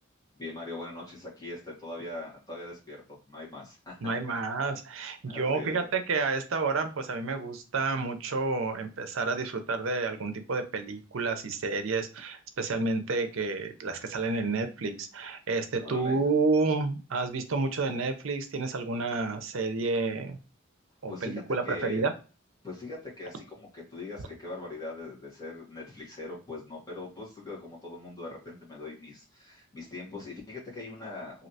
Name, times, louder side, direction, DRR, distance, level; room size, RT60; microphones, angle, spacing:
voice 1, 0.3-4.4 5.2-5.8 15.8-16.2 21.1-22.0 22.6-31.5, left 2 dB, 20° left, -6 dB, 1.4 m, -41 dB
voice 2, 4.0-20.4 21.0-22.1, right 3 dB, 75° right, 8 dB, 0.6 m, -30 dB
3.2 x 2.7 x 2.7 m, 0.33 s
head